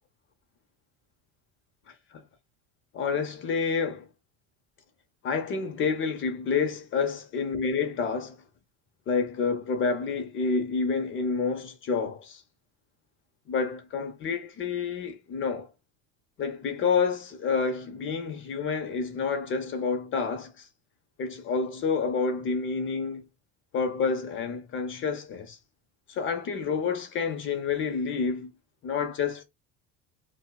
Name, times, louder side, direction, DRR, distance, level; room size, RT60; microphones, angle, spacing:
voice 1, 1.9-2.2 2.9-4.0 5.2-8.4 9.1-12.4 13.5-15.7 16.4-20.7 21.2-23.2 23.7-25.6 26.1-28.5 28.8-29.4, left 5 dB, 40° left, 0.6 m, -29 dB
4.4 x 2.1 x 2.3 m
cardioid pair, 120°, 32 cm